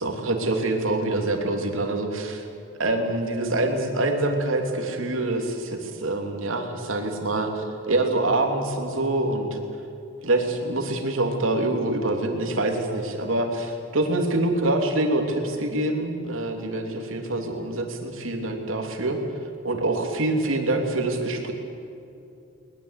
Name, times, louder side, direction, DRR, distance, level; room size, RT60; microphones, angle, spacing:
voice 1, 0.0-2.5 2.8-9.6 10.2-19.2 19.6-21.5, right 2 dB, 80° right, 4 dB, 3.2 m, -25 dB
21.0 x 21.0 x 8.4 m, 2.7 s
head